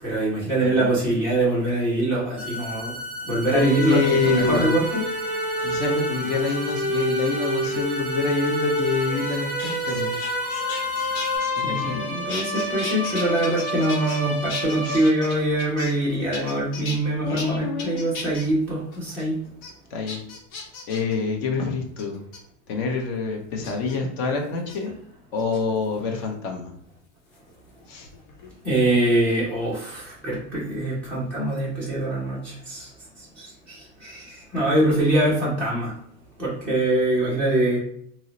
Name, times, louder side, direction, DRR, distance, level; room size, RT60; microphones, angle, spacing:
voice 1, 0.0-2.9 3.3-5.0 11.6-19.4 28.6-32.9 33.4-35.9 36.4-37.8, right 1 dB, 5° left, -10 dB, 0.3 m, -23 dB
sound 1, 2.4-11.4, left 1 dB, 20° right, 0.7 m, -35 dB
voice 2, 3.5-4.7 5.6-10.2 11.6-12.0 14.8-15.1 17.2-18.0 19.9-20.2 20.9-22.2 22.7-24.9 25.3-26.7 27.9-28.1, left 4 dB, 50° left, 2 dB, 0.7 m, -26 dB
sound 2, 3.5-15.5, right 1 dB, 30° left, 1.5 m, -29 dB
sound 3, 9.3-12.0 12.3-14.2 14.5-16.0 16.3-17.0 17.4-17.5 17.8-18.5 18.9-19.2 19.6-19.7 20.1-21.1 22.0-22.4 23.6-24.0 24.6-24.8 25.4-25.9 27.4-28.6 28.8-29.2, left 4 dB, 75° left, 0.9 m, -36 dB
2.8 x 2.0 x 3.8 m, 0.67 s
supercardioid pair, 175°, 42 cm